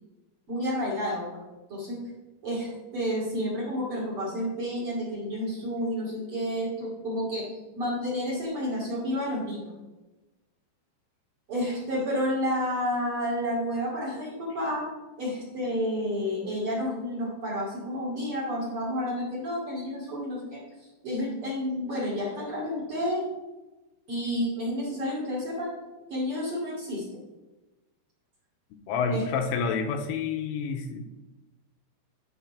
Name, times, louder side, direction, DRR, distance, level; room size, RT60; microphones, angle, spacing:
voice 1, 0.5-1.3 1.7-2.0 2.4-7.5 7.8-9.7 11.5-14.9 15.2-23.2 24.1-25.7 26.1-27.0 29.1-29.2, equal, 40° right, -4 dB, 2.2 m, -30 dB
voice 2, 28.9-31.1, left 5 dB, 85° left, 6 dB, 3.3 m, -29 dB
11.5 x 4.9 x 5.5 m, 1.1 s
omnidirectional pair, 5.8 m